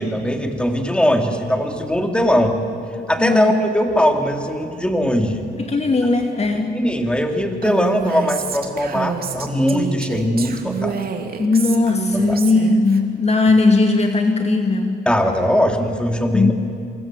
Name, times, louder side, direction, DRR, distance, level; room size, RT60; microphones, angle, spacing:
voice 1, 0.0-2.6 3.1-5.5 6.7-10.9 12.3-12.4 15.0-16.5, equal, 5° left, 4 dB, 3.1 m, -20 dB
voice 2, 5.6-6.8 11.4-15.0 16.3-16.5, left 3 dB, 35° left, 4 dB, 2.2 m, -18 dB
Female speech woman speaking, 7.6-13.0, right 6 dB, 50° right, 2.6 m, -28 dB
27.0 x 25.5 x 7.7 m, 2.4 s
cardioid pair, 90°, 20 cm